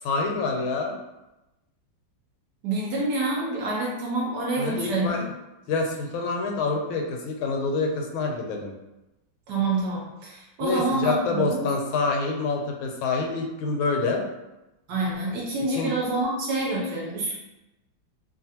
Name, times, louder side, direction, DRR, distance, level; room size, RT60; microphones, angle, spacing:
voice 1, 0.0-1.0 4.6-5.3 5.7-8.7 10.6-14.2 15.7-15.9, left 3 dB, 85° left, 2 dB, 1.4 m, -27 dB
voice 2, 2.6-5.2 9.5-11.7 14.9-17.4, right 2 dB, 70° right, -3 dB, 1.1 m, -27 dB
3.1 x 2.4 x 2.7 m, 0.98 s
omnidirectional pair, 2.2 m